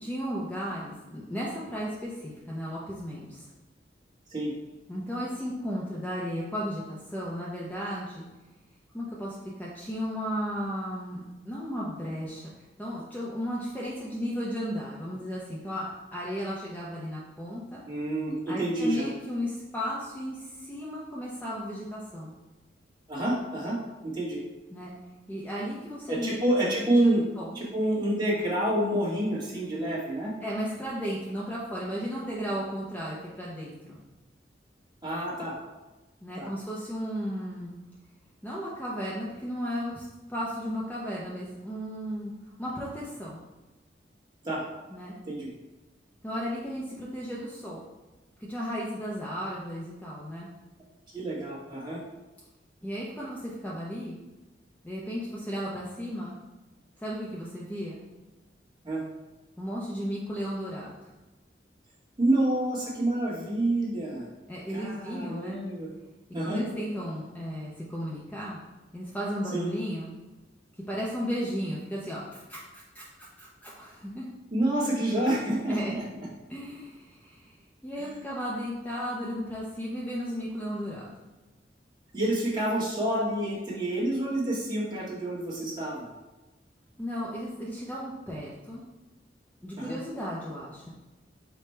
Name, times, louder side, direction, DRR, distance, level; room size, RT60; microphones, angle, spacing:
voice 1, 0.0-3.5 4.9-8.2 8.9-12.5 12.8-17.8 18.5-22.3 24.7-24.9 25.3-26.4 26.9-27.1 27.4-27.5 30.4-34.0 36.2-37.7 38.4-40.0 40.3-42.3 42.6-43.4 44.9-45.1 46.2-47.8 48.4-50.5 52.8-54.2 54.8-56.4 57.0-58.0 59.6-60.9 64.5-65.6 66.4-68.6 68.9-70.1 70.9-74.3 75.7-75.9 76.5-77.6 77.8-81.1 87.0-88.8 89.6-90.9, equal, 10° left, -5 dB, 0.5 m, -34 dB
voice 2, 17.8-19.1 23.1-23.8 24.0-24.4 26.1-27.2 27.5-30.3 35.0-35.6 36.4-36.5 44.4-44.7 45.2-45.5 51.1-52.0 58.8-59.0 62.2-64.3 64.7-65.9 66.3-66.6 69.5-69.7 74.5-76.0 78.0-78.1 82.1-86.1 89.8-90.0, right 1 dB, 25° right, -6 dB, 1.2 m, -28 dB
4.9 x 2.2 x 4.3 m, 1.1 s
head